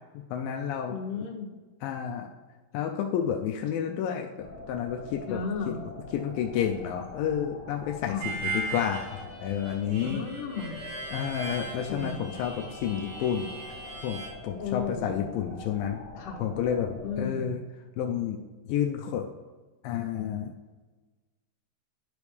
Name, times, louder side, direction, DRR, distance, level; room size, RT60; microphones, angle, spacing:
voice 1, 0.1-1.0 1.8-2.3 2.7-5.4 5.7-5.8 6.1-10.2 11.1-13.6 14.0-16.0 16.4-17.6 18.0-18.4 18.7-19.3 19.8-20.5, left 9 dB, 85° left, 2 dB, 2.1 m, -30 dB
voice 2, 0.9-1.5 5.3-5.8 8.1-8.3 10.0-10.8 11.9-12.2 14.6-15.3 16.2-16.4 17.0-17.5, left 6 dB, 65° left, 0 dB, 2.4 m, -34 dB
sound 1, 4.4-17.2, left 2 dB, 50° left, 1.9 m, -44 dB
Harmonica, 8.2-14.3, right 3 dB, 75° right, 3.7 m, -38 dB
11.5 x 5.2 x 3.2 m, 1.3 s
omnidirectional pair, 4.6 m